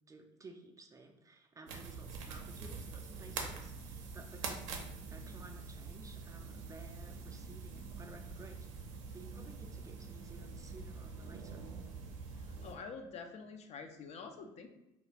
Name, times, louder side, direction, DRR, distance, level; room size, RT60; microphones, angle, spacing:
voice 1, 0.1-4.7 5.0-11.7, right 3 dB, 20° right, 4 dB, 0.4 m, -55 dB
sound 1, 1.7-12.7, right 4 dB, 80° right, 0.5 m, -45 dB
voice 2, 12.4-14.7, left 5 dB, 45° left, 6 dB, 0.4 m, -47 dB
2.4 x 2.3 x 3.2 m, 0.89 s
hypercardioid pair, 70°, 16 cm